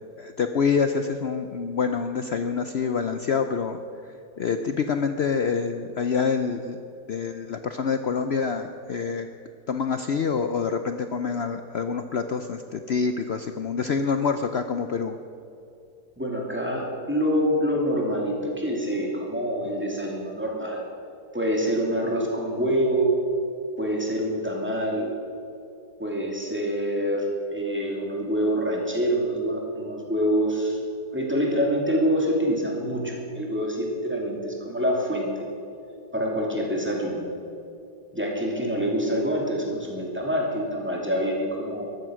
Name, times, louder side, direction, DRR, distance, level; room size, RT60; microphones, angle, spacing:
voice 1, 0.2-6.8 7.1-9.3 9.7-15.2, left 5 dB, 80° left, 8 dB, 0.5 m, -26 dB
voice 2, 16.2-20.9 21.3-23.1 23.8-25.1 26.0-30.8 31.1-35.5 36.1-37.2 38.1-41.9, equal, 5° right, -1 dB, 2.5 m, -26 dB
14.5 x 12.0 x 6.2 m, 2.6 s
omnidirectional pair, 1.8 m